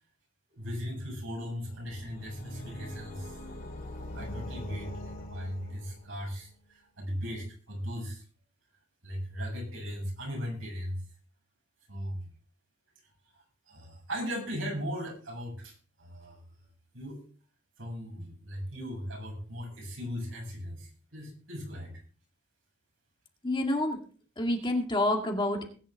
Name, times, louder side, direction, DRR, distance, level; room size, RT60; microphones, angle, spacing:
voice 1, 0.5-3.4 4.1-8.2 9.0-11.0 11.9-12.2 13.3-16.4 16.9-17.2 17.8-21.9, equal, 70° right, 0 dB, 7.2 m, -38 dB
sound 1, 1.6-6.3, left 1 dB, 50° left, 3.7 m, -42 dB
voice 2, 23.4-24.0 24.4-25.7, left 1 dB, 25° left, 3 dB, 2.1 m, -28 dB
20.0 x 10.0 x 3.6 m, 0.42 s
head